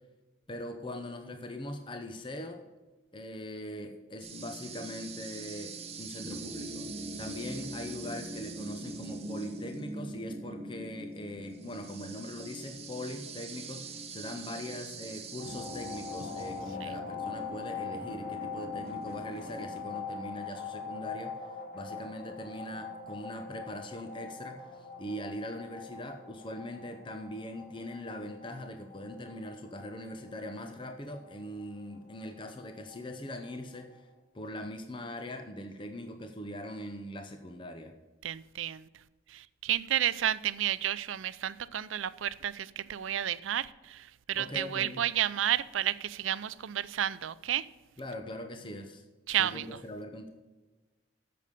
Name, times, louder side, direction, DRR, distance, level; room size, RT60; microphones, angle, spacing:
voice 1, 0.5-2.6 3.1-6.9 7.2-21.3 21.7-34.0 34.3-37.9 44.3-45.0 48.0-49.0 49.4-50.3, left 1 dB, 25° left, 0.7 m, -41 dB
sound 1, 4.2-19.8, right 2 dB, 30° right, 1.0 m, -43 dB
sound 2, 15.4-34.0, left 5 dB, 40° left, 1.8 m, -43 dB
voice 2, 38.2-38.9 39.3-47.7 49.3-49.8, right 11 dB, 80° right, 0.4 m, -31 dB
8.4 x 6.8 x 6.7 m
head